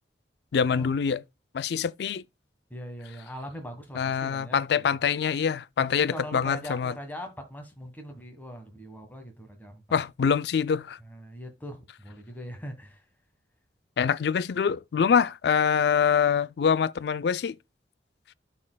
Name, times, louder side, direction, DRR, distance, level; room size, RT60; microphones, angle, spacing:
voice 1, 0.5-1.2 1.5-2.2 4.0-6.9 9.9-11.0 14.0-17.6, left 7 dB, 65° left, 0.3 m, -25 dB
voice 2, 2.7-4.8 5.9-9.8 11.0-13.0 14.9-15.1, equal, 10° left, 1.4 m, -41 dB
13.0 x 4.4 x 2.2 m
head